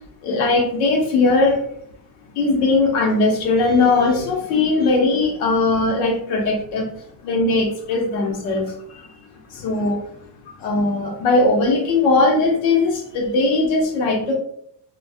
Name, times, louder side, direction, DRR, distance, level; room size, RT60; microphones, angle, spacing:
voice 1, 0.2-1.6 2.4-6.9 7.2-9.1 9.5-10.0 10.5-14.3, left 3 dB, 75° left, 2 dB, 0.9 m, -19 dB
2.6 x 2.3 x 3.4 m, 0.69 s
cardioid pair, 180°, 36 cm